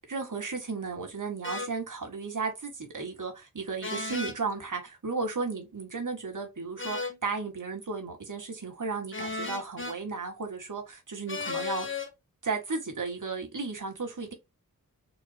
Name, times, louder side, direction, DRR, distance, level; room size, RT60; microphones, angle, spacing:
voice 1, 0.1-12.0 12.4-14.3, right 4 dB, 65° right, 1.9 m, -34 dB
sound 1, 1.4-1.7 3.8-4.4 6.8-7.2 9.1-10.0 11.3-12.1, left 3 dB, 35° left, 1.3 m, -34 dB
4.5 x 4.3 x 2.2 m
wide cardioid pair, 80°, 33 cm